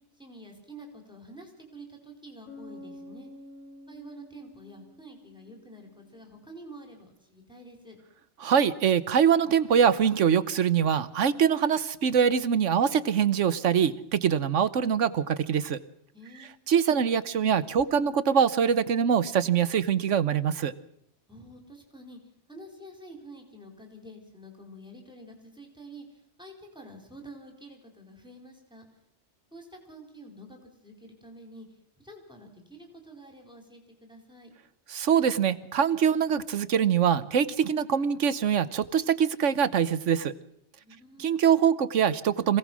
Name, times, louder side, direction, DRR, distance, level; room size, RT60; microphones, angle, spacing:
voice 1, 0.1-3.3 3.9-8.0 16.1-16.5 21.3-22.2 22.5-28.9 29.5-31.7 32.0-34.5 40.7-41.3, right 1 dB, 5° right, 2 dB, 4.3 m, -48 dB
Bass guitar, 2.5-6.1, left 1 dB, 85° left, 4.4 m, -48 dB
voice 2, 8.4-15.8 16.7-20.7 34.9-40.3 41.2-42.6, right 8 dB, 85° right, 15 dB, 1.3 m, -24 dB
26.0 x 17.5 x 6.2 m, 0.77 s
omnidirectional pair, 1.2 m